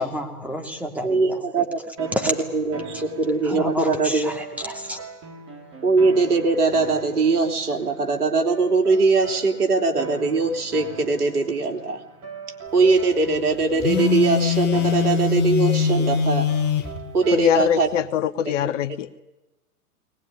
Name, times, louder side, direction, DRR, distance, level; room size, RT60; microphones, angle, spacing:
voice 1, 0.0-1.7 2.1-2.3 3.4-5.0, left 1 dB, 5° right, 4 dB, 2.8 m, -29 dB
voice 2, 1.0-4.3 5.8-12.0 12.7-16.5 17.1-17.9 18.5-18.6 18.9-19.0, right 3 dB, 75° right, 4 dB, 3.5 m, -21 dB
sound 1, 2.0-17.9, right 4 dB, 30° right, 4.5 m, -40 dB
Telephone, 13.8-16.9, left 6 dB, 20° left, 3.1 m, -22 dB
voice 3, 17.3-19.2, left 9 dB, 50° left, 15 dB, 1.0 m, -23 dB
21.0 x 19.5 x 9.9 m, 1.0 s
hypercardioid pair, 115°, 46 cm